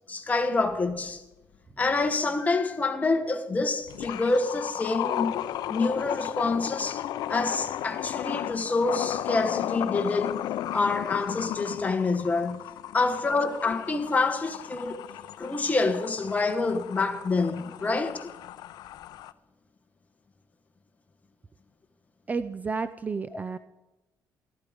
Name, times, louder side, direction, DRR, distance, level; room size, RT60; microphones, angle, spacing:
voice 1, 0.1-1.2 1.8-5.4 5.7-7.0 7.3-10.5 10.7-12.7 12.9-15.0 15.4-18.3, left 3 dB, 20° left, 1.3 m, -27 dB
sound 1, 0.9-1.0 3.9-19.3, left 12 dB, 75° left, 0.5 m, -34 dB
voice 2, 22.3-23.6, right 4 dB, 20° right, 0.5 m, -31 dB
15.0 x 13.5 x 5.2 m
cardioid pair, 125°, 7 cm